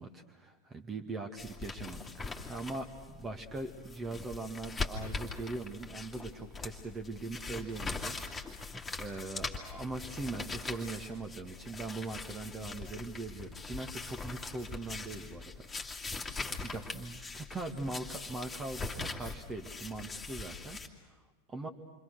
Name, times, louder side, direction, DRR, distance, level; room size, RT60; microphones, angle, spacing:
voice 1, 0.0-8.7 9.0-16.0 16.4-21.2 21.5-21.7, right 3 dB, 20° right, 4 dB, 2.0 m, -41 dB
sound 1, 1.4-20.9, left 4 dB, 10° left, 2.5 m, -42 dB
28.5 x 25.0 x 6.5 m, 1.3 s
figure-of-eight pair, 90°, 0 cm